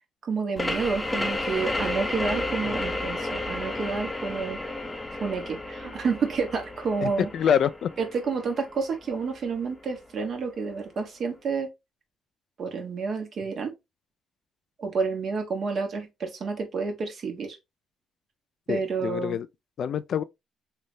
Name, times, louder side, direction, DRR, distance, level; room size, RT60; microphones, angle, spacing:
voice 1, 0.2-4.6 5.2-7.3 8.0-11.7 12.6-13.7 14.8-17.6 18.7-19.4, right 5 dB, 55° right, 1.2 m, -29 dB
sound 1, 0.6-9.9, left 2 dB, 15° left, 0.6 m, -32 dB
voice 2, 7.0-7.9 18.7-19.5 19.8-20.2, left 8 dB, 65° left, 0.3 m, -26 dB
3.3 x 3.2 x 2.6 m
cardioid pair, 90°, 0 cm